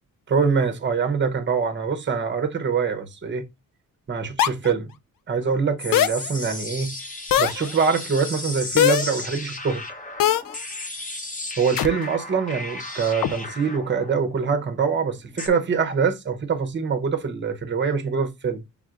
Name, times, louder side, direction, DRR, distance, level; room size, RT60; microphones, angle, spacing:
voice 1, 0.3-3.5 4.1-4.9 5.3-7.0 7.4-9.8 11.6-18.6, right 5 dB, 30° right, 0.8 m, -24 dB
sound 1, 4.4-4.7 5.9-6.3 7.3-7.7 8.8-9.2 10.2-10.6 11.8-11.9 13.2-13.3, left 11 dB, 65° left, 0.5 m, -20 dB
sound 2, 5.8-15.5, left 2 dB, 20° left, 0.8 m, -35 dB
6.0 x 3.6 x 2.4 m
wide cardioid pair, 135°, 36 cm